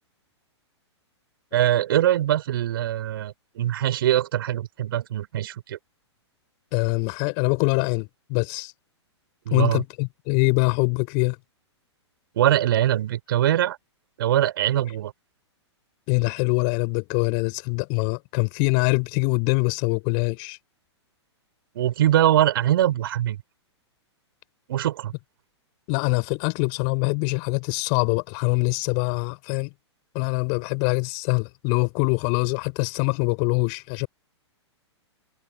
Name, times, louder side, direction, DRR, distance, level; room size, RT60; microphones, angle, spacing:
voice 1, 1.5-5.8 9.5-9.8 12.4-13.8 14.2-15.1 21.8-23.4 24.7-25.1, right 12 dB, 50° right, 5.1 m, -22 dB
voice 2, 6.7-8.7 9.5-11.4 16.1-20.6 25.9-29.7 30.1-34.1, left 40 dB or more, 35° left, 5.8 m, -24 dB
figure-of-eight pair, 110°, 15 cm